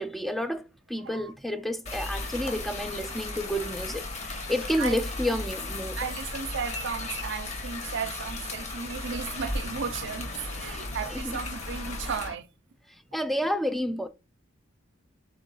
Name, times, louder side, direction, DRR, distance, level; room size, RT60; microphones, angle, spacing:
voice 1, 0.0-6.0 10.6-10.8 11.1-11.4 13.1-14.1, equal, ahead, 0.3 m, -30 dB
sound 1, 1.9-12.4, left 2 dB, 75° left, 0.7 m, -47 dB
sound 2, 1.9-12.3, left 2 dB, 35° left, 1.0 m, -36 dB
voice 2, 5.9-10.3 10.6-12.5, right 6 dB, 65° right, 0.5 m, -35 dB
3.7 x 3.0 x 3.9 m
head